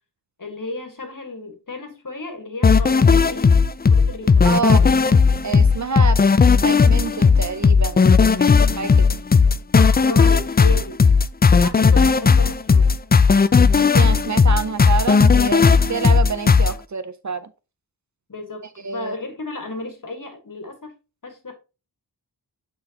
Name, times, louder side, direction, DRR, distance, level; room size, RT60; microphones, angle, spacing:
voice 1, 0.4-3.6 3.9-4.9 9.7-11.0 11.5-13.0 18.3-18.7 18.9-20.9 21.2-21.5, left 2 dB, 50° left, 1.7 m, -34 dB
sound 1, 2.6-16.7, left 5 dB, 25° left, 0.3 m, -15 dB
voice 2, 4.4-4.8 5.4-6.2 6.6-9.1 13.8-15.6 15.9-17.5 18.8-19.2, right 5 dB, 45° right, 0.6 m, -27 dB
8.6 x 3.9 x 2.9 m
wide cardioid pair, 60°, 41 cm